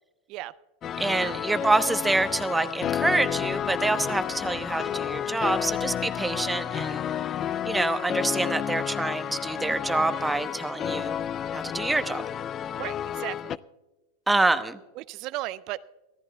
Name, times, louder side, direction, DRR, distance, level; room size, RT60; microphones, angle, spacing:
sound 1, 0.8-13.6, left 9 dB, 35° left, 0.4 m, -31 dB
voice 1, 1.0-7.0 7.6-11.2 11.5-12.2 14.3-14.8, right 2 dB, 10° right, 10 dB, 0.9 m, -26 dB
voice 2, 12.8-13.5 15.0-15.9, right 17 dB, 50° right, 16 dB, 0.4 m, -35 dB
26.5 x 14.0 x 2.2 m, 1.1 s
hypercardioid pair, 100°, 0 cm